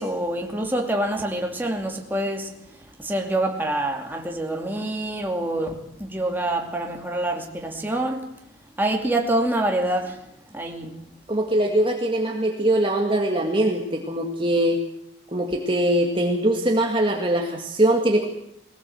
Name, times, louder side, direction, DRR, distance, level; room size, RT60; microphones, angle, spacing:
voice 1, 0.0-2.5 3.0-8.3 8.8-10.2 10.5-10.9, right 1 dB, 10° right, 2.6 m, -26 dB
voice 2, 11.3-14.8 15.3-18.2, right 1 dB, 25° right, 1.9 m, -22 dB
21.0 x 19.0 x 7.9 m
head